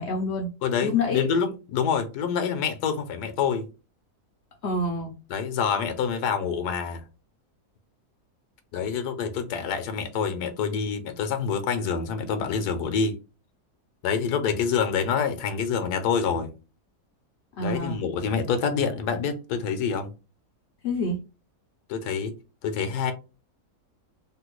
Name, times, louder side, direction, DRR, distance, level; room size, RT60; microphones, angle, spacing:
voice 1, 0.0-0.5 0.8-1.3 4.6-5.1 17.6-18.0 20.8-21.2, left 2 dB, 65° left, 0.7 m, -27 dB
voice 2, 0.6-3.6 5.3-7.0 8.7-13.1 14.0-16.5 17.6-20.1 21.9-22.3 22.6-23.1, left 6 dB, 80° left, 1.2 m, -26 dB
3.5 x 2.2 x 3.0 m
omnidirectional pair, 1.7 m